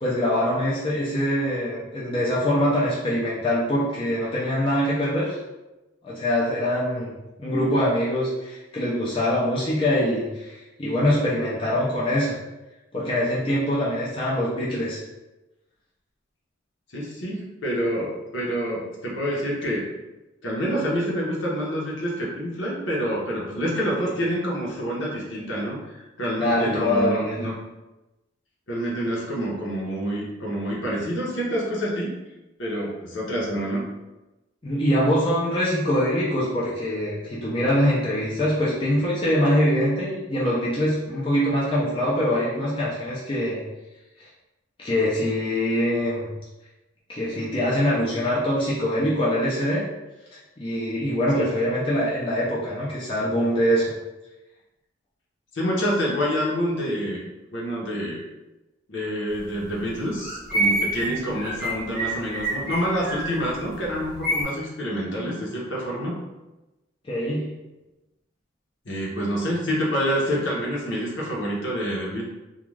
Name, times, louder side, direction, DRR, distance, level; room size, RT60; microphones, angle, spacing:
voice 1, 0.0-5.4 6.0-7.1 7.4-12.4 12.9-15.0 24.0-24.1 26.4-27.4 34.6-43.6 44.2-44.3 44.8-46.3 47.1-49.8 50.3-53.9 67.1-67.5, equal, 25° left, -6 dB, 0.5 m, -23 dB
voice 2, 16.9-19.8 20.4-27.6 28.7-32.1 32.6-33.8 51.3-51.5 55.5-57.2 57.5-58.2 58.9-66.2 68.8-72.2, equal, 65° left, -4 dB, 0.8 m, -27 dB
sound 1, 59.4-59.5 59.8-64.4, right 1 dB, 5° right, 1.0 m, -27 dB
2.4 x 2.3 x 3.1 m, 1.0 s
head